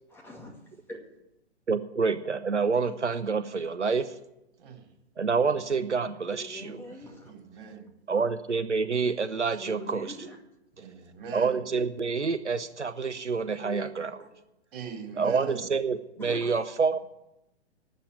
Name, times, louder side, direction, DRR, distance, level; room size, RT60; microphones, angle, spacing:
voice 1, 0.1-0.5 0.9-1.0 6.3-7.3 9.6-10.4 13.6-13.9 14.2-14.3 16.2-16.5, left 1 dB, 5° left, 2.2 m, -42 dB
voice 2, 1.7-4.1 5.2-6.9 8.1-10.2 11.3-14.2 15.2-17.0, right 5 dB, 90° right, 0.8 m, -27 dB
voice 3, 7.2-7.9 10.8-11.6 14.7-15.6, right 5 dB, 50° right, 3.5 m, -40 dB
12.5 x 7.7 x 9.4 m
figure-of-eight pair, 120°, 34 cm